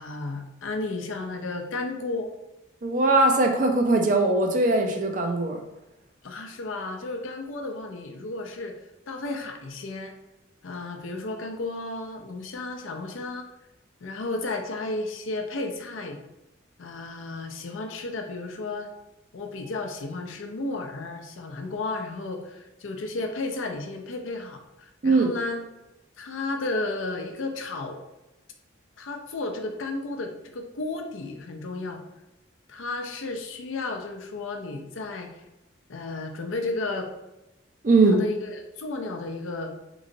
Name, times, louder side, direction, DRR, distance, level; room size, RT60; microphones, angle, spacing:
voice 1, 0.0-2.3 6.2-8.7 9.1-10.1 10.6-13.5 14.0-16.2 16.8-18.9 19.3-25.6 26.2-28.0 29.0-32.0 32.7-35.3 35.9-37.1 38.1-39.7, left 2 dB, 85° left, 4 dB, 0.5 m, -33 dB
voice 2, 2.8-5.6 25.0-25.3 37.8-38.2, right 2 dB, 40° right, 4 dB, 0.4 m, -20 dB
3.8 x 3.1 x 2.6 m, 0.98 s
head